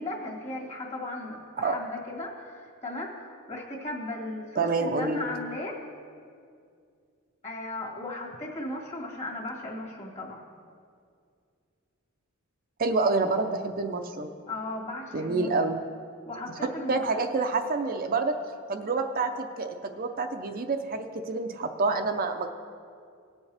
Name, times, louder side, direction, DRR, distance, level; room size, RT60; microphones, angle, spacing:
voice 1, 0.0-5.9 7.4-10.4 14.5-15.8 16.3-17.1, left 2 dB, 30° left, -2 dB, 1.9 m, -36 dB
voice 2, 4.6-5.2 12.8-14.3 15.1-15.8 16.9-18.4 18.7-22.5, right 3 dB, 40° right, 5 dB, 0.5 m, -27 dB
18.5 x 7.1 x 3.4 m, 2.3 s
head